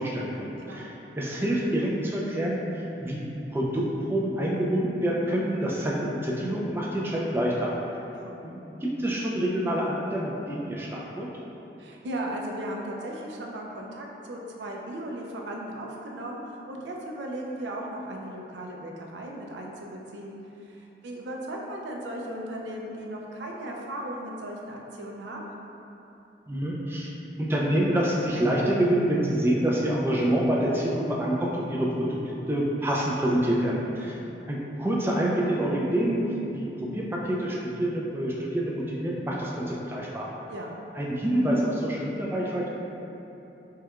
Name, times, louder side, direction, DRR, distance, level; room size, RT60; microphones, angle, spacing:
voice 1, 0.0-2.6 3.0-3.3 3.5-3.8 4.1-7.7 8.4-11.3 26.5-27.1 27.4-34.1 34.5-36.2 36.5-40.3 41.0-42.7, right 1 dB, 15° right, -4 dB, 0.3 m, -27 dB
voice 2, 11.8-25.6 34.0-34.3 40.5-40.7, right 1 dB, 85° right, -1 dB, 0.4 m, -37 dB
4.4 x 2.3 x 2.3 m, 2.9 s
head